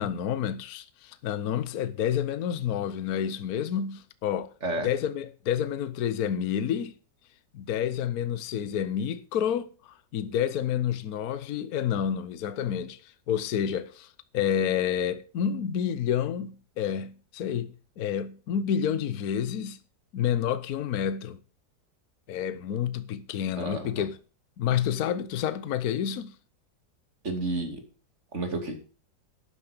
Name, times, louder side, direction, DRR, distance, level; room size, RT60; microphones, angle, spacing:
voice 1, 0.0-4.5 4.8-7.0 7.5-19.8 20.1-21.4 22.3-24.2 24.6-26.4, left 9 dB, 60° left, 1.3 m, -29 dB
voice 2, 23.6-24.1 27.2-27.8 28.3-28.8, right 2 dB, 40° right, 2.9 m, -31 dB
12.0 x 9.9 x 5.1 m
omnidirectional pair, 2.0 m